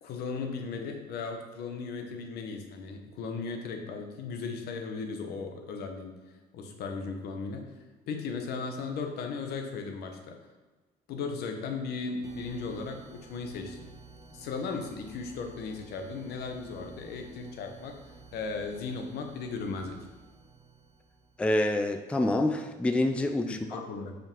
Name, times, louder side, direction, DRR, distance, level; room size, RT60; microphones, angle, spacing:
voice 1, 0.0-6.2 6.5-7.6 8.1-10.4 11.1-13.9 14.3-18.0 18.3-20.0 23.4-24.1, left 4 dB, 70° left, 4 dB, 0.9 m, -36 dB
sound 1, 12.2-21.6, right 4 dB, 20° right, 0.8 m, -53 dB
voice 2, 21.4-23.8, left 1 dB, 5° left, 7 dB, 0.3 m, -27 dB
4.9 x 3.9 x 5.2 m, 1.2 s
cardioid pair, 110°, 17 cm